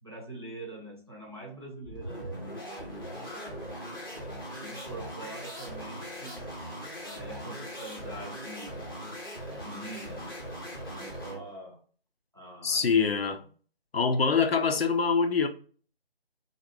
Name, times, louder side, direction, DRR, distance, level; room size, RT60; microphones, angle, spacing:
voice 1, 0.0-4.3 4.6-6.4 7.0-8.9 9.6-10.4 10.9-11.8 12.3-13.1, right 2 dB, 25° right, 0.5 m, -44 dB
sound 1, 1.8-11.5, equal, 20° left, 0.5 m, -40 dB
voice 2, 12.6-13.4 13.9-15.5, left 5 dB, 75° left, 0.5 m, -24 dB
2.5 x 2.1 x 3.1 m
figure-of-eight pair, 155°, 31 cm